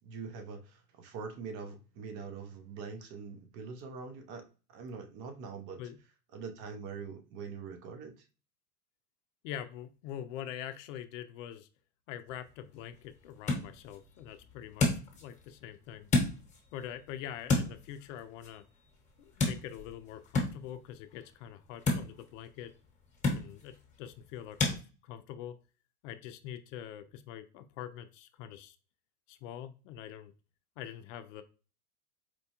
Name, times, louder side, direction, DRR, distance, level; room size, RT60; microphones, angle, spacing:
voice 1, 0.0-5.8 6.3-8.2, right 5 dB, 45° right, 0.7 m, -43 dB
voice 2, 9.4-11.7 12.1-16.1 16.7-18.6 19.2-22.7 23.3-25.6 26.0-28.8 29.3-30.3 30.8-31.4, left 10 dB, 55° left, 0.5 m, -44 dB
sound 1, 12.3-24.8, left 2 dB, 15° left, 1.0 m, -35 dB
4.4 x 2.2 x 2.8 m
hypercardioid pair, 115°, 45 cm